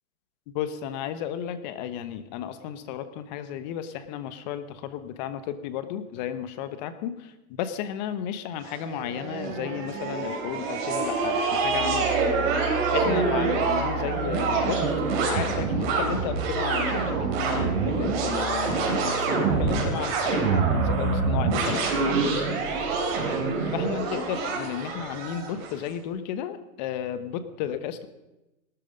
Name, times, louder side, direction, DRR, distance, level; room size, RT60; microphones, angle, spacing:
voice 1, 0.5-12.2 12.9-14.8 15.2-22.2 23.6-28.1, left 9 dB, 30° left, 12 dB, 1.2 m, -33 dB
sound 1, 8.7-25.8, right 4 dB, 40° right, 4.2 m, -26 dB
18.0 x 13.0 x 5.3 m, 0.99 s
hypercardioid pair, 150°, 44 cm